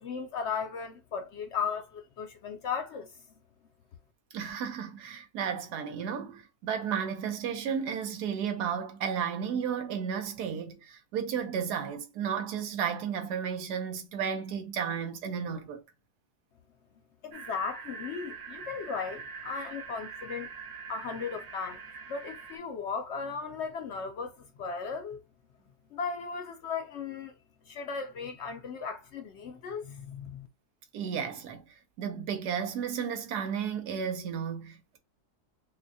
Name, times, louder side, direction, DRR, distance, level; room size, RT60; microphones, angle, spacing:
voice 1, 0.0-3.1 17.2-20.5 20.9-25.2 25.9-27.3 27.7-30.5, left 5 dB, 70° left, 0.6 m, -36 dB
voice 2, 4.3-15.8 30.9-31.6 32.0-35.0, right 7 dB, 90° right, 1.3 m, -33 dB
sound 1, 17.3-22.6, right 5 dB, 65° right, 1.0 m, -44 dB
6.0 x 2.2 x 2.6 m
omnidirectional pair, 1.7 m